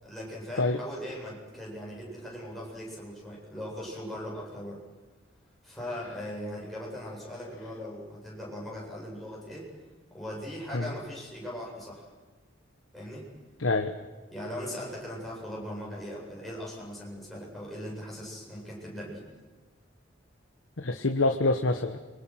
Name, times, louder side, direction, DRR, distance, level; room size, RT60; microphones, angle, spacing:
voice 1, 0.0-4.8 5.6-9.6 10.1-12.1 12.9-13.3 14.3-19.2, equal, ahead, -5 dB, 7.9 m, -39 dB
voice 2, 13.6-13.9 20.8-22.0, left 2 dB, 90° left, 6 dB, 1.2 m, -26 dB
29.5 x 23.0 x 6.4 m, 1.3 s
head